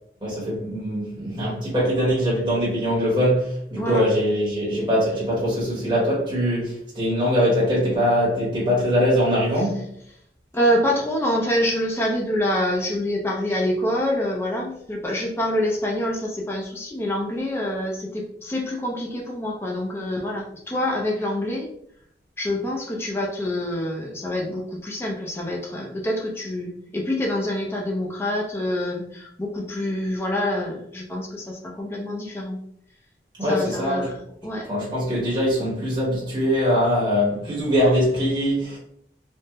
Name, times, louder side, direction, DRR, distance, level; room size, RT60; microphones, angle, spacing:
voice 1, 0.2-9.9 33.4-34.1 34.7-38.8, equal, 25° right, 1.0 m, -22 dB
voice 2, 3.8-4.1 9.6-9.7 10.5-21.7 22.4-32.6 33.4-34.7, left 1 dB, 15° left, 0.4 m, -26 dB
3.5 x 2.0 x 2.8 m
head